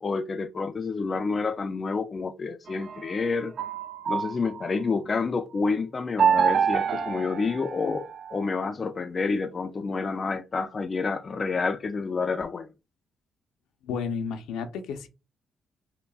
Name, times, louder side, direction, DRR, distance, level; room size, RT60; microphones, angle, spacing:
voice 1, 0.0-3.5 4.1-12.7, left 4 dB, 35° left, 0.4 m, -29 dB
sound 1, 2.7-4.9 6.2-8.4, right 7 dB, 55° right, 0.4 m, -27 dB
voice 2, 13.8-15.1, left 6 dB, 90° left, 0.6 m, -32 dB
5.7 x 2.1 x 2.3 m
cardioid pair, 90°, 0 cm